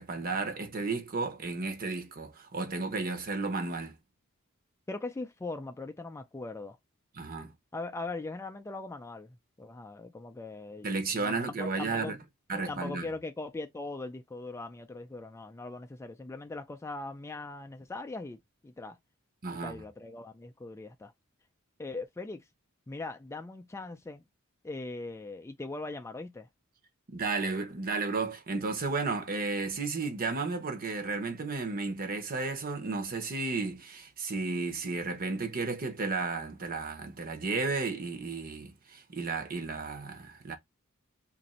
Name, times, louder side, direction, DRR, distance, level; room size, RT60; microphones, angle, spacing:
voice 1, 0.0-4.0 7.2-7.5 10.8-12.2 12.5-13.1 19.4-19.8 27.1-40.6, right 3 dB, 45° right, 0.9 m, -33 dB
voice 2, 4.9-6.8 7.7-12.1 12.5-19.0 19.5-21.1 21.8-22.5 22.9-24.2 24.6-26.5, left 3 dB, 15° left, 0.3 m, -40 dB
2.9 x 2.6 x 4.1 m
head